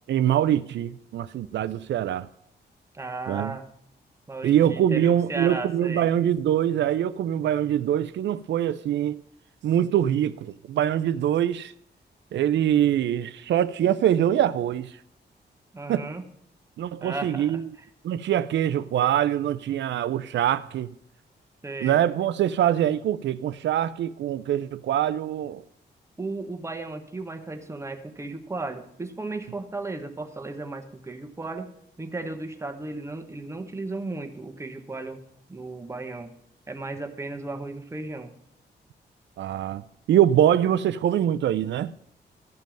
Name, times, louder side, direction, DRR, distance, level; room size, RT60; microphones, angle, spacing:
voice 1, 0.1-2.3 3.3-3.5 4.4-9.2 9.6-11.7 12.3-14.9 15.9-16.0 16.8-17.7 18.0-20.9 21.8-25.6 39.4-39.8 40.1-41.9, right 10 dB, 90° right, 0.4 m, -23 dB
voice 2, 2.9-3.7 4.3-6.1 15.7-16.2 17.0-17.8 21.6-22.0 26.2-31.7 32.0-35.2 35.5-36.3 36.7-38.3, right 3 dB, 15° right, 1.0 m, -35 dB
13.0 x 5.3 x 7.5 m
wide cardioid pair, 155°, 18 cm